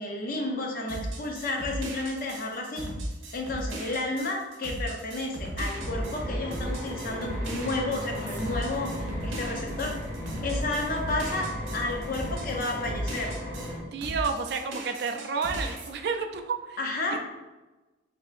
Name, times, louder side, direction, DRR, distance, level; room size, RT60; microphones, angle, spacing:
voice 1, 0.0-2.8 3.3-8.9 9.2-10.0 10.4-13.3 16.8-17.2, left 2 dB, 45° left, 1 dB, 0.5 m, -31 dB
sound 1, 0.9-13.7 14.0-15.9, right 1 dB, 85° right, 0.9 m, -36 dB
sound 2, 5.7-13.8, equal, 20° right, 1.4 m, -36 dB
voice 2, 13.8-16.8 17.1-17.2, right 5 dB, 55° right, 6 dB, 0.3 m, -31 dB
4.3 x 2.7 x 2.5 m, 1.1 s
head